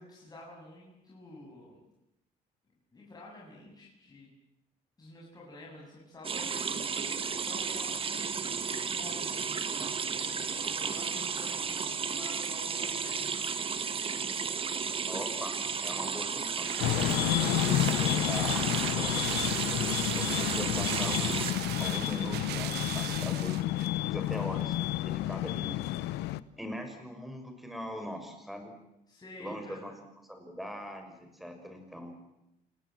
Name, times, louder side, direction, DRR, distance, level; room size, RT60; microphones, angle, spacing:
voice 1, 0.0-1.9 2.9-4.3 5.0-7.0 7.4-13.5 29.1-29.8, left 1 dB, 25° left, -4 dB, 7.7 m, -50 dB
sound 1, 6.2-21.5, right 5 dB, 35° right, 1.7 m, -33 dB
voice 2, 15.1-15.6 15.8-19.7 20.1-23.6 24.1-24.8 25.0-25.8 26.6-28.7 29.4-29.9 30.3-32.2, equal, ahead, 5 dB, 6.2 m, -41 dB
sound 2, 15.8-24.0 24.3-24.4, right 13 dB, 75° right, 1.2 m, -39 dB
sound 3, 16.8-26.4, left 15 dB, 90° left, 0.9 m, -30 dB
29.0 x 19.0 x 7.7 m, 0.86 s
cardioid pair, 110°, 17 cm